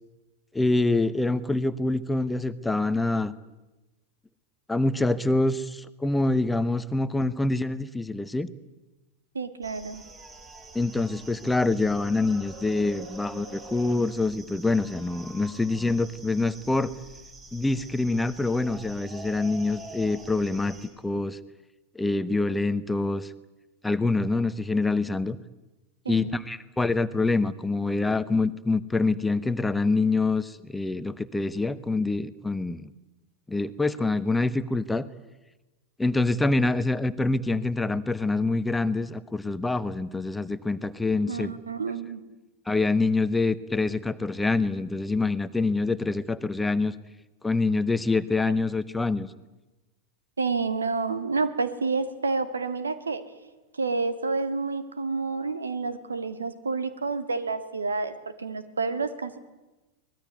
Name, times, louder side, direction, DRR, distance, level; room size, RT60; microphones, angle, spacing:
voice 1, 0.5-3.3 4.7-8.5 10.7-16.9 17.5-20.8 21.0-21.4 21.9-23.3 23.8-25.4 26.1-32.9 33.5-35.1 36.0-41.5 42.7-46.9 47.4-49.3, left 3 dB, 5° left, 13 dB, 0.9 m, -25 dB
voice 2, 9.3-10.0 26.1-26.4 41.3-42.2 50.4-53.2 53.7-59.4, right 4 dB, 75° right, 12 dB, 1.8 m, -29 dB
sound 1, 9.6-20.9, right 2 dB, 20° right, 5.0 m, -45 dB
24.0 x 20.0 x 9.2 m, 1.1 s
figure-of-eight pair, 90°, 0 cm